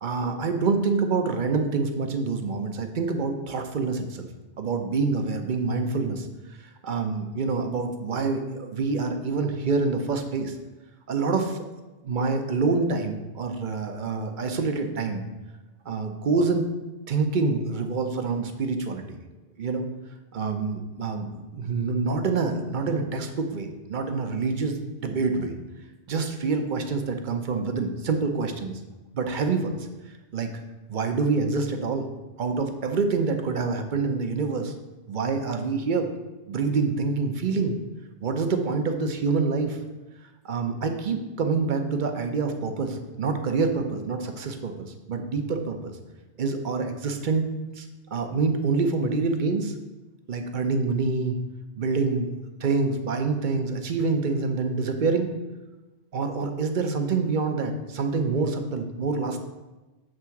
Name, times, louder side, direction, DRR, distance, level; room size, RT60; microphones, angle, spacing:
voice 1, 0.0-4.3 4.6-6.3 6.8-10.6 11.1-11.6 12.0-15.3 15.9-16.6 17.1-19.2 19.6-19.9 20.3-25.6 26.1-28.7 29.1-29.9 30.3-30.5 30.9-32.1 32.4-34.7 35.1-36.1 36.5-37.8 38.2-39.8 40.4-46.0 46.4-47.5 47.8-47.9 48.1-49.7 50.3-51.4 51.8-52.3 52.6-55.3 56.1-59.4, right 4 dB, 50° right, 5 dB, 0.8 m, -26 dB
7.7 x 3.6 x 5.8 m, 1.1 s
omnidirectional pair, 1.2 m